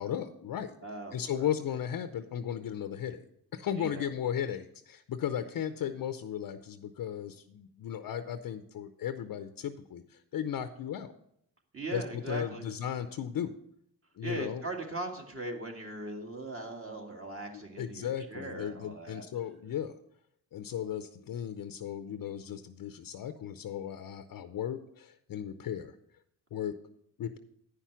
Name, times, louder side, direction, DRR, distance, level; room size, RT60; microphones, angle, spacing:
voice 1, 0.0-0.8 1.1-3.2 3.5-11.1 11.9-13.6 14.2-14.6 17.8-20.0 20.5-26.0 26.5-26.8 27.2-27.4, left 9 dB, 60° left, 10 dB, 0.6 m, -36 dB
voice 2, 0.8-1.5 3.7-4.0 11.7-12.7 14.2-19.2, right 2 dB, 35° right, 2 dB, 2.0 m, -39 dB
9.8 x 5.7 x 6.0 m, 0.74 s
cardioid pair, 85°, 39 cm